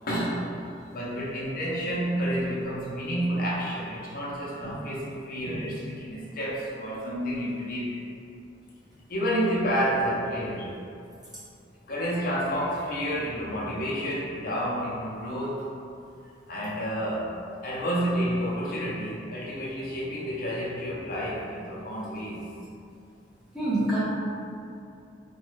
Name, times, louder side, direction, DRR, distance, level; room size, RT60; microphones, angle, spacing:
voice 1, 0.0-0.5 0.9-8.0 9.1-10.8 11.9-15.7 16.5-17.4 17.6-22.4, equal, 50° left, -5 dB, 0.6 m, -30 dB
voice 2, 23.5-24.0, right 1 dB, 5° right, -12 dB, 0.9 m, -27 dB
3.0 x 2.2 x 3.1 m, 2.5 s
head